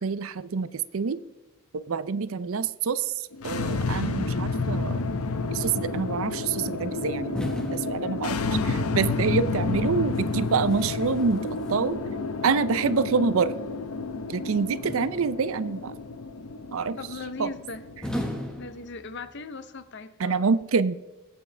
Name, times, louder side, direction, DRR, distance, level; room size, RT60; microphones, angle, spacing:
voice 1, 0.0-1.2 1.7-3.1 3.4-5.0 5.5-7.4 7.7-12.0 12.4-13.5 14.3-15.9 16.7-17.0 17.4-17.5 20.2-20.9, right 5 dB, 65° right, 16 dB, 0.5 m, -26 dB
sound 1, 3.3-18.6, left 3 dB, 80° left, 0.8 m, -30 dB
sound 2, 7.3-8.8 10.1-12.2 14.8-15.7 18.0-19.5, equal, 5° left, 1.3 m, -37 dB
voice 2, 8.0-8.4 17.0-17.9 18.6-20.5, left 3 dB, 50° left, 12 dB, 0.7 m, -39 dB
20.5 x 8.5 x 3.3 m, 1.1 s
head